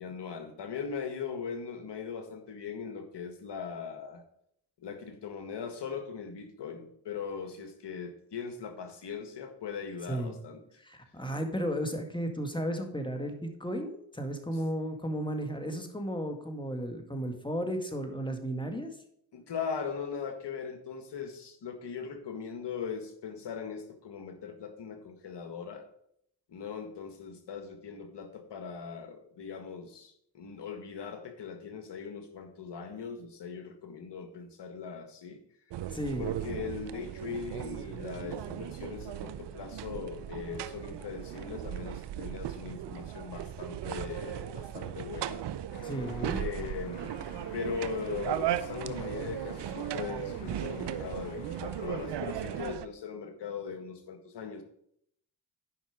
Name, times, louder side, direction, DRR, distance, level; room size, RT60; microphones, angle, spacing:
voice 1, 0.0-4.2 4.8-10.8 19.3-25.8 26.5-35.4 36.2-45.5 46.3-47.1 47.5-54.6, left 6 dB, 60° left, 7 dB, 1.7 m, -40 dB
voice 2, 10.8-18.9 35.9-36.3 45.8-46.4, equal, 10° left, 5 dB, 2.0 m, -34 dB
sound 1, 35.7-52.9, right 11 dB, 60° right, 0.7 m, -37 dB
sound 2, 45.7-52.8, left 7 dB, 85° left, 0.9 m, -50 dB
10.5 x 5.4 x 5.1 m, 0.71 s
supercardioid pair, 50°, 46 cm